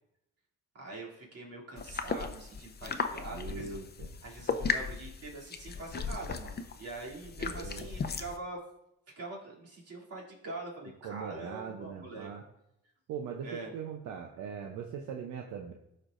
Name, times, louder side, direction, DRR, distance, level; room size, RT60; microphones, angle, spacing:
voice 1, 0.7-3.8 4.2-8.6 9.2-12.3 13.4-13.7, right 2 dB, 55° right, -4 dB, 2.9 m, -44 dB
sound 1, 1.8-8.4, left 5 dB, 35° left, 0.7 m, -36 dB
voice 2, 3.3-4.1 7.4-8.0 11.0-12.4 13.1-15.7, right 7 dB, 80° right, 2 dB, 0.8 m, -41 dB
12.0 x 4.5 x 2.6 m, 0.82 s
cardioid pair, 90°, 30 cm